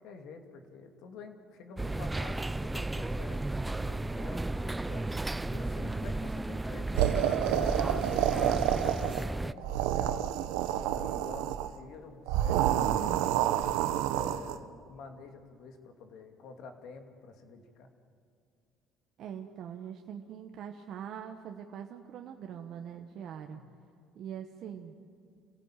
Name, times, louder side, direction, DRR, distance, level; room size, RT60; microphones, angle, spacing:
voice 1, 0.0-10.3 10.7-13.7 14.1-17.9 23.5-23.7, left 4 dB, 70° left, 5 dB, 2.7 m, -48 dB
sound 1, 1.8-9.5, right 2 dB, 10° right, 0.5 m, -34 dB
sound 2, 7.0-9.3 9.6-11.7 12.3-14.6, right 11 dB, 85° right, 1.0 m, -29 dB
voice 2, 19.2-23.6 24.1-24.9, right 8 dB, 60° right, 4 dB, 1.3 m, -43 dB
27.5 x 16.0 x 9.1 m, 2.5 s
supercardioid pair, 95°, 0 cm